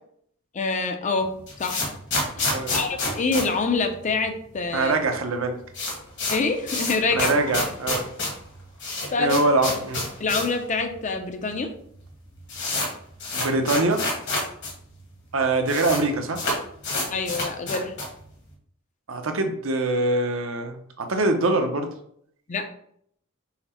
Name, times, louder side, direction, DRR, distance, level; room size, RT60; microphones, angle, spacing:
voice 1, 0.5-1.3 1.6-1.9 2.4-4.9 6.3-7.3 9.1-9.4 10.2-11.7 17.1-17.9 22.5-22.7, left 4 dB, 35° left, 6 dB, 0.5 m, -26 dB
sound 1, 1.2-4.5 4.7-4.8 5.0-5.1 5.4-10.6 10.9-11.0 11.7-11.8 12.0-14.7 15.0-15.1 15.3-16.0 16.3-18.2, left 2 dB, 55° left, 1.3 m, -28 dB
voice 2, 4.7-5.6 7.1-8.1 9.2-10.1 13.3-14.0 15.3-16.4 19.1-21.9, right 2 dB, 70° right, 5 dB, 0.7 m, -23 dB
5.7 x 2.1 x 4.2 m, 0.67 s
head